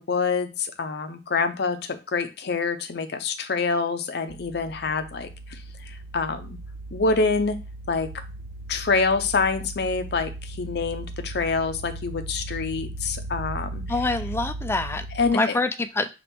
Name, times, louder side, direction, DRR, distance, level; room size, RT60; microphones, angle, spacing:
voice 1, 0.0-6.6 6.9-7.6 7.9-8.2 8.7-13.8 15.2-15.6, left 4 dB, 70° left, 8 dB, 0.6 m, -26 dB
sound 1, 4.3-15.3, right 2 dB, 60° right, 0.4 m, -37 dB
voice 2, 13.9-15.1 15.3-16.1, left 2 dB, 15° left, 9 dB, 0.4 m, -25 dB
5.8 x 2.4 x 3.5 m, 0.29 s
head